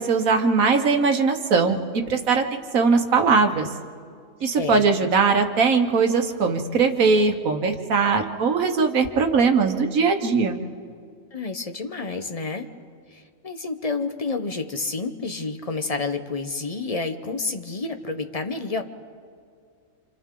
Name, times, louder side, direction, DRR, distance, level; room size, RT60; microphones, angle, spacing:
voice 1, 0.0-3.7 4.4-10.6, right 4 dB, 85° right, 5 dB, 1.7 m, -20 dB
voice 2, 4.5-5.1 11.3-12.7 13.1-18.8, left 3 dB, 30° left, 6 dB, 0.9 m, -29 dB
28.5 x 27.0 x 3.8 m, 2.2 s
omnidirectional pair, 1.4 m